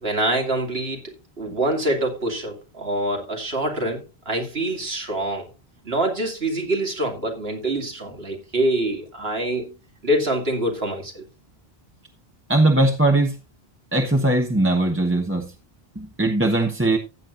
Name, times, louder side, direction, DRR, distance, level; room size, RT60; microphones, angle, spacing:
voice 1, 0.0-5.5 5.8-9.7 10.0-11.2, right 1 dB, 75° right, 2.7 m, -25 dB
voice 2, 12.5-13.3 13.9-15.5 16.0-17.0, right 2 dB, 10° right, 1.1 m, -20 dB
15.0 x 8.8 x 2.5 m
omnidirectional pair, 1.0 m